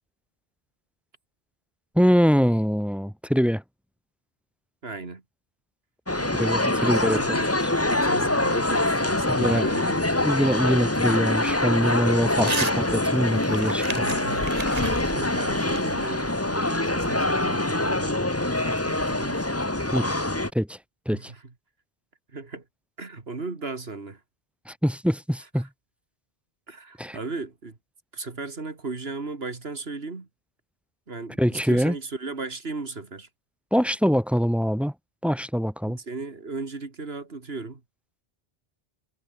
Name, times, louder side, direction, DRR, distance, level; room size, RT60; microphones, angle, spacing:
voice 1, 1.9-3.6 6.4-7.4 9.3-9.7 10.2-14.0 19.9-20.1 20.5-20.8 21.0-21.3 24.7-25.7 27.0-27.2 31.4-31.9 33.7-34.9 35.2-36.0, equal, ahead, 1.7 m, -23 dB
voice 2, 4.8-5.2 6.2-6.5 6.8-7.6 7.8-10.5 12.4-12.7 13.9-19.5 21.1-21.5 22.3-22.6 23.0-24.2 25.6-25.7 26.7-27.8 28.1-30.3 31.1-33.3 35.9-37.8, right 3 dB, 75° right, 2.6 m, -36 dB
sound 1, 6.1-20.5, left 1 dB, 15° left, 1.3 m, -24 dB
Crumpling crinkling / Tearing, 12.4-12.8 13.1-16.4, right 3 dB, 40° right, 1.7 m, -34 dB
omnidirectional pair, 1.0 m